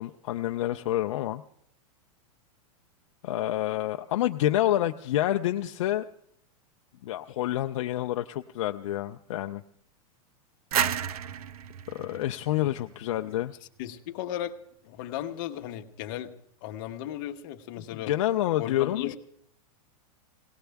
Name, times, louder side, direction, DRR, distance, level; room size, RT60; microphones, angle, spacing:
voice 1, 0.0-1.4 3.2-6.0 7.0-9.6 11.9-13.5 18.1-19.1, left 13 dB, 55° left, 5 dB, 0.5 m, -28 dB
sound 1, 10.7-13.4, right 9 dB, 80° right, 0.6 m, -32 dB
voice 2, 13.8-14.6 14.8-16.3 16.6-18.1 18.6-19.2, left 12 dB, 35° left, 4 dB, 0.9 m, -35 dB
21.0 x 17.5 x 3.4 m, 0.68 s
supercardioid pair, 175°, 19 cm